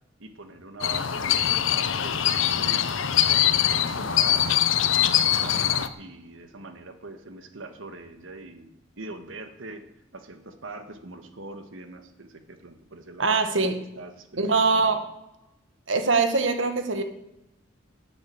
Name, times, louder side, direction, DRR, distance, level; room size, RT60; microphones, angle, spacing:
voice 1, 0.2-4.6 5.2-9.8 10.1-13.4 13.9-14.9, right 2 dB, 85° right, 8 dB, 1.6 m, -42 dB
sound 1, 0.8-5.9, left 10 dB, 75° left, 0.8 m, -23 dB
voice 2, 13.2-13.8 14.4-15.0 15.9-17.0, right 4 dB, 70° right, 7 dB, 1.5 m, -22 dB
10.5 x 7.8 x 8.7 m, 0.91 s
head